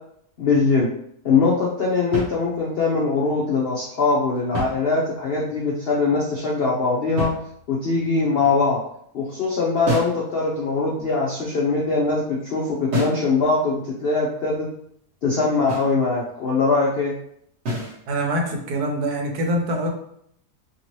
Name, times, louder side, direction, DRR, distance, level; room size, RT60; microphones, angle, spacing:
voice 1, 0.4-0.9 1.2-7.3 7.7-8.8 9.1-14.7 15.2-17.1, left 4 dB, 70° left, -4 dB, 0.5 m, -22 dB
sound 1, 2.1-2.9 4.3-5.4 7.2-7.9 9.8-10.3 12.9-13.3 15.7-16.0 17.6-18.0, right 1 dB, 50° right, 0.9 m, -29 dB
voice 2, 18.1-19.9, right 1 dB, 75° right, 2 dB, 1.2 m, -24 dB
2.9 x 2.7 x 3.0 m, 0.70 s
omnidirectional pair, 1.7 m